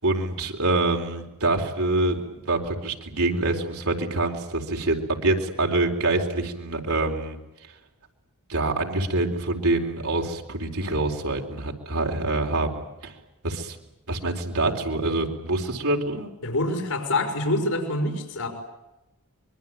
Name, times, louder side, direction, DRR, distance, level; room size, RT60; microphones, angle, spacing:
voice 1, 0.0-7.4 8.5-13.1 13.4-13.8 14.1-16.3, right 2 dB, 70° right, 2 dB, 4.3 m, -25 dB
voice 2, 16.4-18.5, left 1 dB, 80° left, 4 dB, 5.0 m, -26 dB
25.0 x 22.5 x 9.2 m, 0.95 s
head